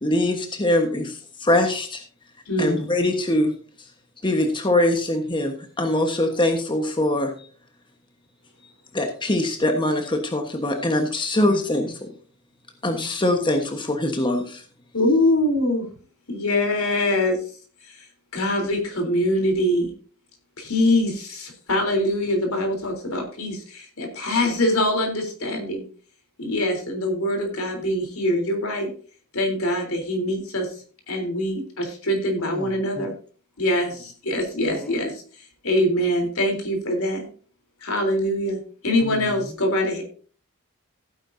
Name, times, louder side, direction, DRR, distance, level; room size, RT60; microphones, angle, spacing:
voice 1, 0.0-2.0 2.6-3.9 4.2-7.5 8.9-12.1 12.8-14.6, left 1 dB, 20° left, 4 dB, 1.3 m, -23 dB
voice 2, 2.5-2.9 11.5-11.6 14.9-15.9 16.3-17.4 18.3-19.9 20.6-25.8 26.4-28.9 29.3-30.7 31.1-33.1 33.6-35.2 35.6-37.3 37.8-40.0, left 1 dB, 70° left, 3 dB, 3.7 m, -23 dB
voice 3, 32.4-33.1 34.7-34.9 39.0-39.6, equal, 5° left, 7 dB, 0.6 m, -36 dB
15.5 x 9.2 x 2.7 m, 0.41 s
head